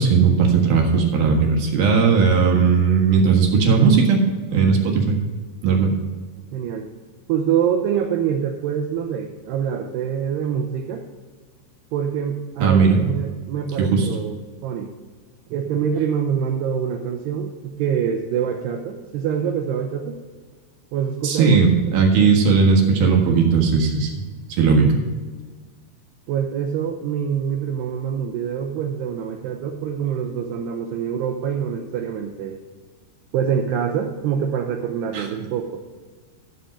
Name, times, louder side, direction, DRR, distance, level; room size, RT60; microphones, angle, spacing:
voice 1, 0.0-4.2 4.5-5.2 5.6-5.9 12.6-13.0 13.8-14.1 21.2-24.1 24.5-25.0 35.1-35.3, right 5 dB, 60° right, 0 dB, 2.9 m, -17 dB
voice 2, 6.5-6.9 7.3-11.1 11.9-14.9 15.5-20.1 20.9-21.6 26.3-32.6 33.3-35.8, right 8 dB, 80° right, 2 dB, 2.4 m, -25 dB
13.0 x 7.3 x 5.3 m, 1.4 s
omnidirectional pair, 5.7 m